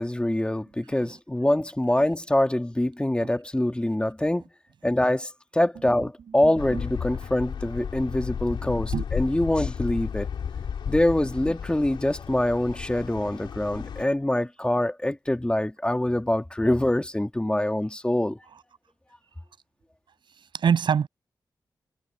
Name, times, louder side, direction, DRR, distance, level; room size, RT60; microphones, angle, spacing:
voice 1, 0.0-4.4 4.8-10.3 10.9-18.4, left 1 dB, 10° left, 1.8 m, -25 dB
voice 2, 6.4-6.8 8.9-9.0 20.5-21.1, right 7 dB, 85° right, 7.0 m, -25 dB
sound 1, 6.6-14.0, left 7 dB, 90° left, 3.1 m, -33 dB
cardioid pair, 65°, 8 cm